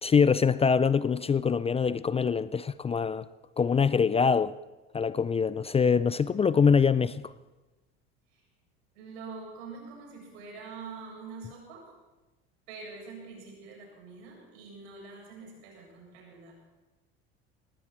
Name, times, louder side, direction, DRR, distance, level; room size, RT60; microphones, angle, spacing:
voice 1, 0.0-3.3 3.6-4.5 4.9-7.3, left 6 dB, 20° left, 0.4 m, -24 dB
voice 2, 8.9-11.9 12.7-16.5, right 4 dB, 80° right, 7.8 m, -45 dB
19.5 x 16.5 x 4.5 m
supercardioid pair, 90°, 32 cm